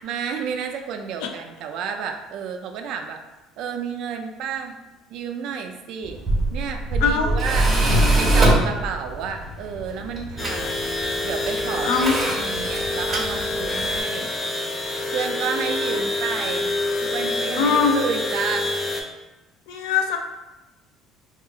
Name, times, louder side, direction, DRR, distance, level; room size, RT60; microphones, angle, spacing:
voice 1, 0.0-3.2 3.6-4.8 5.1-6.2 6.5-10.8 11.2-14.3 15.1-16.7 17.0-18.7, right 6 dB, 55° right, 5 dB, 0.3 m, -31 dB
Tools, 6.0-14.0, right 1 dB, 15° right, 0.6 m, -23 dB
voice 2, 7.0-7.3 11.9-12.1 17.6-17.9 19.7-20.2, left 6 dB, 85° left, 4 dB, 0.4 m, -21 dB
sound 1, 10.4-19.0, left 2 dB, 25° left, 0.4 m, -27 dB
2.7 x 2.4 x 3.8 m, 1.1 s
cardioid pair, 165°, 0 cm